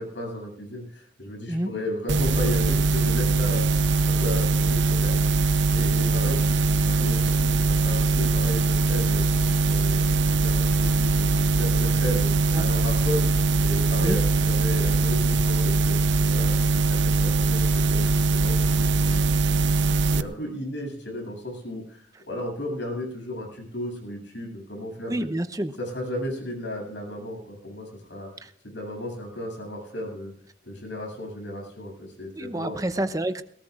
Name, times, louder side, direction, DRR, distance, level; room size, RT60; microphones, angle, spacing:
voice 1, 0.0-9.3 9.6-13.3 13.6-16.6 16.9-19.2 19.6-19.7 20.1-25.3 25.8-28.3 28.6-30.3 30.7-33.0, left 1 dB, 70° left, 0 dB, 7.9 m, -34 dB
sound 1, 2.1-20.2, right 3 dB, 70° right, 0.7 m, -22 dB
voice 2, 25.1-25.8 28.4-28.5 32.3-33.4, right 1 dB, 20° right, 10 dB, 0.7 m, -28 dB
22.0 x 18.5 x 2.5 m, 0.64 s
head